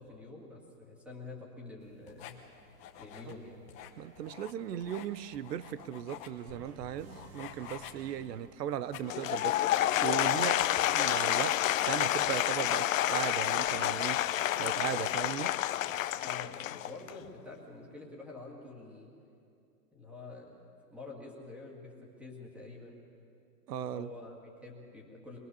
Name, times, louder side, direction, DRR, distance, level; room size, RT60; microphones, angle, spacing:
voice 1, 0.0-2.4 3.0-3.7 16.2-16.6 16.8-19.1 19.9-20.6 20.9-23.1 23.9-25.4, left 3 dB, 5° right, -1 dB, 2.2 m, -47 dB
sound 1, 1.8-15.7, left 9 dB, 15° left, 0.9 m, -52 dB
voice 2, 4.0-9.6 10.0-10.7 10.9-14.3 14.6-15.6 23.7-24.1, right 9 dB, 85° right, 16 dB, 0.9 m, -37 dB
sound 2, 6.5-9.3, right 3 dB, 20° right, 0.7 m, -54 dB
Applause / Crowd, 9.0-17.2, left 13 dB, 55° left, 0.7 m, -29 dB
23.5 x 22.5 x 7.0 m, 2.5 s
supercardioid pair, 175°, 47 cm